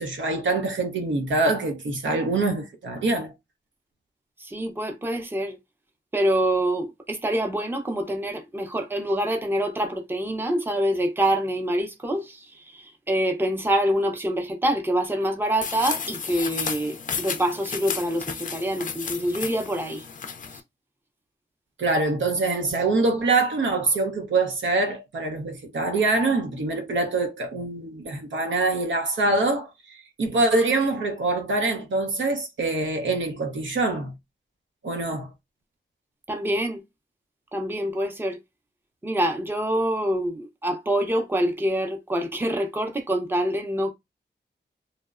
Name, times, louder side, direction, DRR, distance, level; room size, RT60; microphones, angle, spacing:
voice 1, 0.0-3.3 21.8-34.1 34.8-35.3, right 3 dB, 85° right, 0.7 m, -24 dB
voice 2, 4.4-5.6 6.1-12.5 12.7-20.0 36.3-36.8 37.5-38.4 39.0-43.9, right 1 dB, 10° right, 0.5 m, -26 dB
sound 1, 15.6-20.6, left 6 dB, 45° left, 0.4 m, -33 dB
2.8 x 2.0 x 2.4 m
wide cardioid pair, 90°, 19 cm